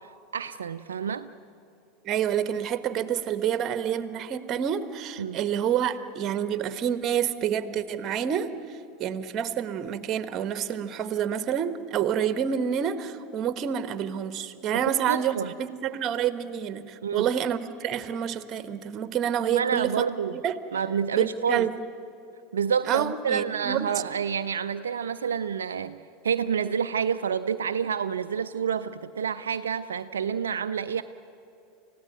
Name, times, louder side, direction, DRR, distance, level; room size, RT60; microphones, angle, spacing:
voice 1, 0.0-1.3 5.2-5.4 15.1-15.5 17.0-17.3 19.5-20.4 20.7-21.7 22.5-26.0 26.2-31.0, right 7 dB, 75° right, 9 dB, 0.5 m, -28 dB
voice 2, 2.0-20.1 20.3-20.5 21.1-21.7 22.9-23.9, right 9 dB, 40° right, 12 dB, 1.3 m, -28 dB
29.5 x 16.0 x 9.2 m, 2.7 s
figure-of-eight pair, 80°, 0 cm